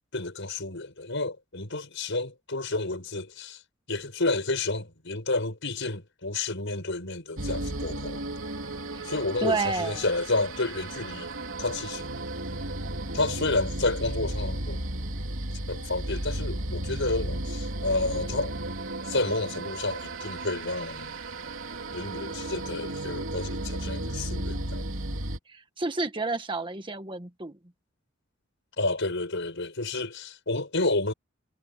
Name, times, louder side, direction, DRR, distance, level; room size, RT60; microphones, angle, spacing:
voice 1, 0.1-3.6 3.9-8.2 9.0-11.3 11.6-12.1 13.1-14.8 15.7-18.5 19.1-21.1 21.9-24.8 28.8-31.1, left 2 dB, 65° left, 6.6 m, -30 dB
sound 1, 7.4-25.4, right 1 dB, 75° right, 3.2 m, -34 dB
voice 2, 9.4-10.0 25.5-27.5, right 3 dB, 25° right, 1.7 m, -30 dB
head